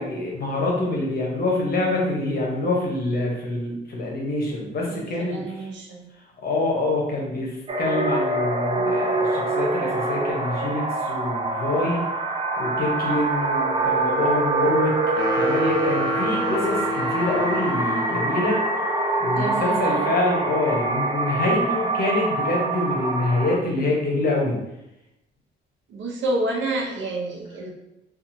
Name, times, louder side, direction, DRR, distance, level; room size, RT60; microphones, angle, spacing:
voice 1, 0.0-5.7 6.4-12.0 12.6-24.6, left 2 dB, 50° left, -1 dB, 0.9 m, -26 dB
voice 2, 4.9-6.1 19.3-20.1 25.9-27.7, right 2 dB, 70° right, 0 dB, 0.7 m, -29 dB
sound 1, 7.7-23.6, right 2 dB, 25° right, 0.4 m, -25 dB
sound 2, 15.2-18.5, left 1 dB, 65° left, 0.5 m, -30 dB
2.7 x 2.4 x 2.7 m, 0.88 s
cardioid pair, 90°, 20 cm